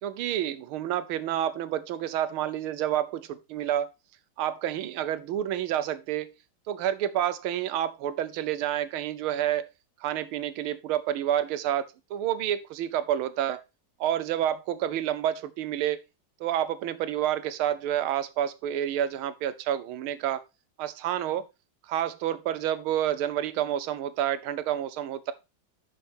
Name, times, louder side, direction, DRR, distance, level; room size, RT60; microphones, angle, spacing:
voice 1, 0.0-3.9 4.4-6.3 6.7-9.7 10.0-13.6 14.0-16.0 16.4-20.4 20.8-21.4 21.9-25.3, right 11 dB, 90° right, 1.6 m, -29 dB
6.4 x 6.0 x 4.3 m
omnidirectional pair, 2.3 m